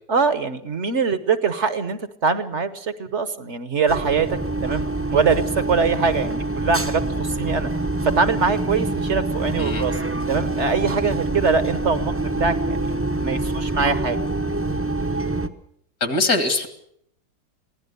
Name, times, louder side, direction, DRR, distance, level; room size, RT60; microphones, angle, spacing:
voice 1, 0.1-7.7 8.0-9.9 10.3-14.2, right 5 dB, 50° right, 12 dB, 1.2 m, -23 dB
sound 1, 3.9-15.5, right 2 dB, 10° right, 0.7 m, -25 dB
voice 2, 16.0-16.7, left 2 dB, 65° left, 8 dB, 2.4 m, -22 dB
23.5 x 16.5 x 6.8 m, 0.70 s
omnidirectional pair, 1.7 m